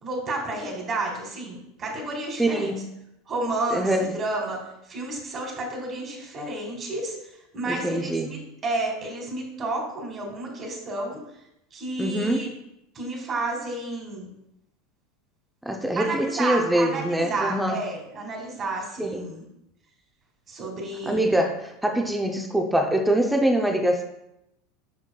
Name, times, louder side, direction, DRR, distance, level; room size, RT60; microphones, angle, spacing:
voice 1, 0.0-2.7 3.3-4.6 4.9-11.2 11.7-12.5 12.9-14.3 15.9-19.4 20.5-21.3, right 2 dB, 25° right, 1 dB, 1.7 m, -31 dB
voice 2, 2.4-2.9 3.7-4.1 7.7-8.3 12.0-12.5 15.7-17.8 19.0-19.2 21.1-24.0, right 1 dB, 5° right, 3 dB, 0.5 m, -24 dB
7.2 x 5.7 x 2.3 m, 0.84 s
supercardioid pair, 145°, 0 cm